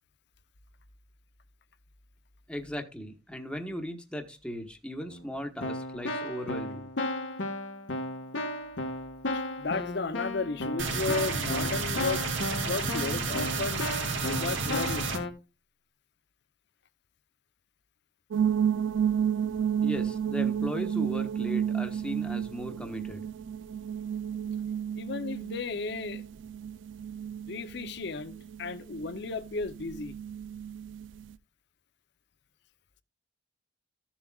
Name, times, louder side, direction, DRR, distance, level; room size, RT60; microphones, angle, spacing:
voice 1, 2.5-6.9 19.8-23.2, equal, 5° left, 1.1 m, -37 dB
Keyboard (musical), 5.1-5.3 5.6-15.3, left 2 dB, 85° left, 1.5 m, -35 dB
voice 2, 9.6-12.2 12.5-13.8 14.2-15.3 24.9-26.2 27.5-30.1, left 3 dB, 60° left, 0.7 m, -34 dB
sound 1, 10.8-15.2, right 4 dB, 90° right, 2.2 m, -31 dB
sound 2, 18.3-31.3, right 8 dB, 75° right, 0.4 m, -32 dB
14.0 x 7.2 x 2.3 m
head